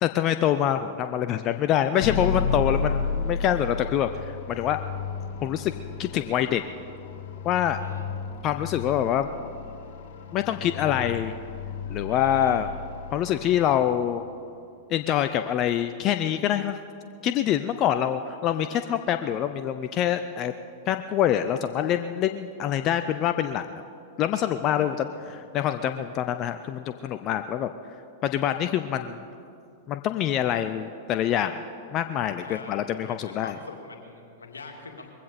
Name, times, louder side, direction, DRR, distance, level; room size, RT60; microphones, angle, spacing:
voice 1, 0.0-4.8 5.4-5.7 6.0-6.6 7.4-7.8 8.4-9.3 10.3-11.3 11.9-12.7 13.1-14.3 14.9-16.8 17.2-20.5 20.9-23.7 24.2-27.7 28.2-29.2 29.9-31.6 31.9-33.6, left 10 dB, 40° left, 9 dB, 0.6 m, -25 dB
sound 1, 2.0-14.2, left 5 dB, 60° left, 1.4 m, -33 dB
voice 2, 7.7-8.1 12.1-12.6 24.7-25.2 32.4-35.1, left 4 dB, 85° left, 2 dB, 2.2 m, -44 dB
21.0 x 16.0 x 4.3 m, 2.5 s
hypercardioid pair, 100°, 0 cm